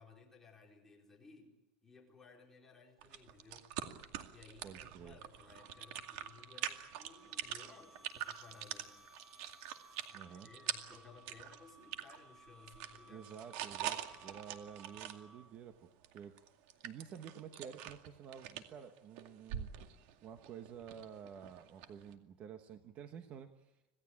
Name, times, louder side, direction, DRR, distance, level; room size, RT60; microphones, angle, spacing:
voice 1, 0.0-1.6 1.8-3.7 4.3-9.0 10.1-13.3, left 4 dB, 10° left, -2 dB, 4.4 m, -59 dB
sound 1, 3.0-12.2 12.5-15.2 16.0-22.1, right 11 dB, 60° right, 2.3 m, -44 dB
voice 2, 4.6-5.2 10.1-10.5 13.1-16.4 16.8-19.9 20.2-23.7, right 8 dB, 30° right, 7 dB, 1.2 m, -51 dB
sound 2, 5.3-15.7, right 2 dB, 10° right, 1.5 m, -61 dB
27.0 x 17.5 x 8.8 m, 1.0 s
cardioid pair, 175°, 5 cm